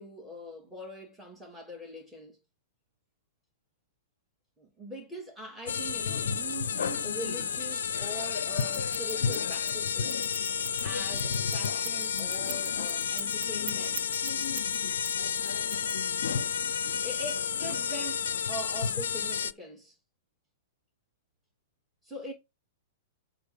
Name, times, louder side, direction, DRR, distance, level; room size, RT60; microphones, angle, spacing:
voice 1, 0.0-2.4 4.6-10.2 10.8-14.0 17.0-19.9 22.0-22.3, equal, 10° right, 3.2 m, -42 dB
sound 1, 5.7-19.5, left 7 dB, 70° left, 0.5 m, -31 dB
Scissors, 8.6-14.8 15.0-16.3, right 11 dB, 30° right, 0.4 m, -42 dB
7.8 x 4.0 x 5.8 m
figure-of-eight pair, 105°, 0 cm